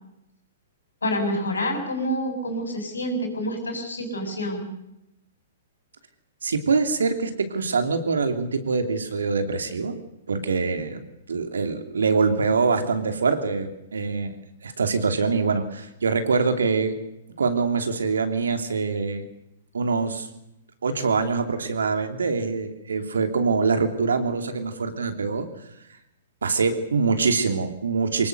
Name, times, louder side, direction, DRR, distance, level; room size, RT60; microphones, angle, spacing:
voice 1, 1.0-4.7, equal, 85° left, 5 dB, 6.9 m, -27 dB
voice 2, 6.4-9.9 10.3-14.4 14.6-16.9 17.4-19.3 19.7-20.3 20.8-25.5 26.4-28.3, right 4 dB, 80° right, 7 dB, 2.9 m, -24 dB
23.5 x 20.5 x 6.7 m, 0.85 s
hypercardioid pair, 115°, 0 cm